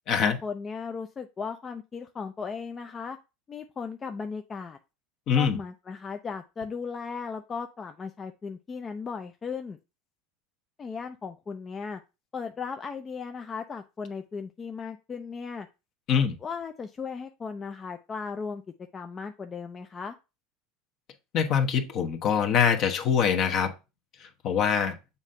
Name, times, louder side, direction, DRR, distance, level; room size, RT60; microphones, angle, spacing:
voice 1, 0.2-3.2 3.5-4.8 5.4-9.8 10.8-12.0 12.3-15.7 16.4-18.6 18.9-20.2, left 5 dB, 25° left, 0.5 m, -36 dB
voice 2, 5.3-5.6 16.1-16.3 21.3-23.7 24.4-25.0, left 7 dB, 50° left, 1.1 m, -24 dB
7.1 x 2.6 x 5.5 m
supercardioid pair, 120°, 0 cm